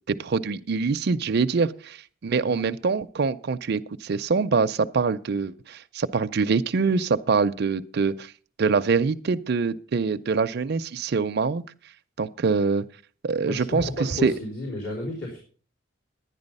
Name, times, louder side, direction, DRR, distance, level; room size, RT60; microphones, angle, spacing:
voice 1, 0.1-8.3 8.6-11.6 12.2-12.8 13.2-13.9 14.2-14.3, right 4 dB, 55° right, 9 dB, 0.5 m, -24 dB
voice 2, 13.4-15.4, left 1 dB, 75° left, -4 dB, 3.7 m, -32 dB
11.0 x 9.8 x 5.3 m, 0.42 s
head